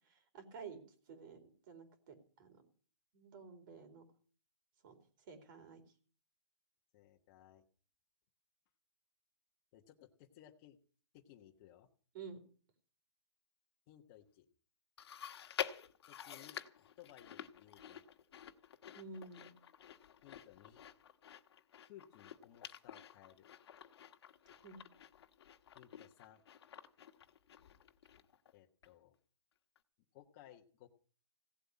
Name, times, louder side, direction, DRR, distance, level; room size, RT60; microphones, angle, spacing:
voice 1, 0.0-2.6 3.1-4.1 4.8-5.0 5.3-5.8 12.1-12.4 18.9-19.5 24.5-24.9, right 5 dB, 45° right, 7 dB, 4.2 m, -52 dB
voice 2, 6.9-7.6 9.7-10.8 11.1-11.9 13.9-14.5 16.1-18.1 20.2-20.8 21.8-23.5 25.7-26.4 28.5-29.2 30.1-30.9, left 12 dB, 35° left, 1 dB, 1.3 m, -60 dB
Chewing mastication, 15.0-28.5 28.8-28.9 29.7-29.8, left 9 dB, 60° left, 1.6 m, -49 dB
17.0 x 7.9 x 9.8 m, 0.42 s
hypercardioid pair, 150°, 15 cm